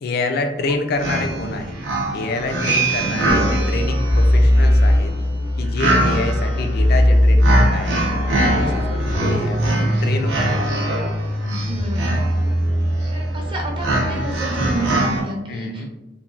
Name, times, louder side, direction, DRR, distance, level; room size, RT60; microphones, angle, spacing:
voice 1, 0.0-1.7 2.1-5.2 5.6-10.6 15.5-15.9, left 3 dB, 60° left, 5 dB, 0.3 m, -27 dB
sound 1, 0.6-0.7 1.0-15.2, right 2 dB, 85° right, 0.6 m, -24 dB
sound 2, 3.3-14.7, left 1 dB, 90° left, 0.7 m, -20 dB
voice 2, 11.4-12.2 13.1-15.9, right 1 dB, 30° right, -1 dB, 0.6 m, -30 dB
3.0 x 2.2 x 2.5 m, 0.95 s
head